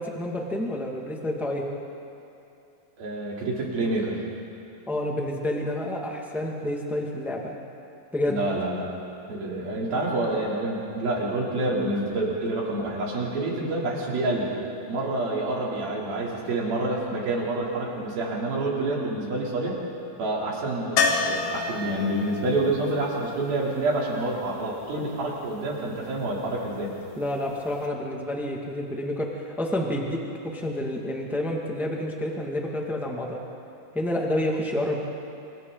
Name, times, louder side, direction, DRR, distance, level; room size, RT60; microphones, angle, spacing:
voice 1, 0.0-1.7 4.9-7.4 8.1-8.4 27.2-33.4 33.9-35.0, left 1 dB, ahead, -1 dB, 1.4 m, -29 dB
voice 2, 3.0-4.2 8.3-8.9 9.3-14.5 14.9-19.8 20.2-26.9, right 2 dB, 80° right, -4 dB, 5.6 m, -28 dB
sound 1, 21.0-24.8 27.5-27.6 27.8-27.9, left 4 dB, 70° left, 3.1 m, -29 dB
29.5 x 27.0 x 4.1 m, 2.7 s
omnidirectional pair, 4.2 m